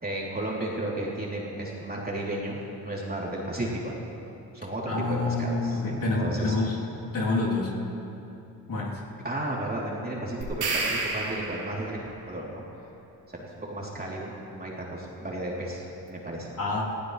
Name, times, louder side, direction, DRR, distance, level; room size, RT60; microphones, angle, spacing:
voice 1, 0.0-4.0 4.5-6.5 9.2-12.0 12.3-12.6 13.3-16.5, right 1 dB, 25° right, -4 dB, 3.6 m, -33 dB
voice 2, 4.9-6.8 7.1-7.8 8.7-9.0 16.6-16.8, left 2 dB, 55° left, -6 dB, 3.6 m, -27 dB
sound 1, 10.4-12.0, right 3 dB, 75° right, 3.6 m, -30 dB
21.0 x 15.0 x 3.4 m, 2.9 s
cardioid pair, 70°, 39 cm